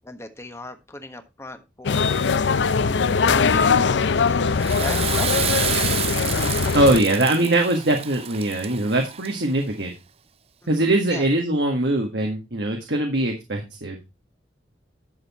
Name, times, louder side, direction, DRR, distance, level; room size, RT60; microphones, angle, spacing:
voice 1, 0.0-2.2 2.8-6.0 7.1-7.2 10.8-11.3, left 1 dB, 15° left, 7 dB, 1.3 m, -39 dB
sound 1, 1.9-7.0, left 5 dB, 75° left, 0.5 m, -21 dB
Water / Toilet flush, 4.4-9.6, right 10 dB, 35° right, 0.4 m, -29 dB
voice 2, 6.7-9.9 10.7-14.0, right 1 dB, 65° right, 2 dB, 1.8 m, -21 dB
11.0 x 6.9 x 4.3 m, 0.25 s
head